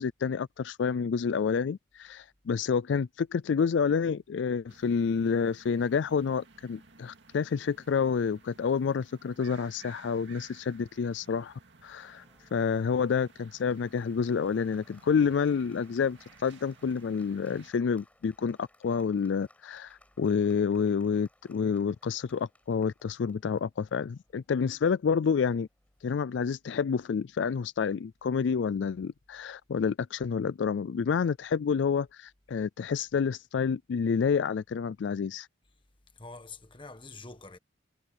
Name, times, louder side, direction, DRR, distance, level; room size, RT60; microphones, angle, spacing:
voice 1, 0.0-11.5 11.8-12.2 12.5-25.7 26.0-35.5, left 6 dB, 70° left, 0.4 m, -29 dB
sound 1, 4.7-17.7, right 4 dB, 70° right, 2.2 m, -57 dB
Applause, 11.8-26.2, left 1 dB, 5° left, 7.1 m, -65 dB
voice 2, 36.2-37.6, left 3 dB, 25° left, 1.4 m, -46 dB
head